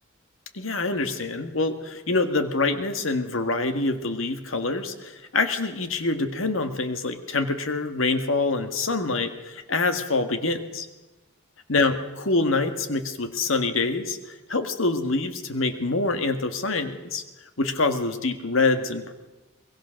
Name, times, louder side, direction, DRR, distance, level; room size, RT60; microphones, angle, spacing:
voice 1, 0.5-10.9 11.7-17.2 17.6-19.1, left 3 dB, 90° left, 8 dB, 1.8 m, -25 dB
23.0 x 21.5 x 6.5 m, 1.1 s
head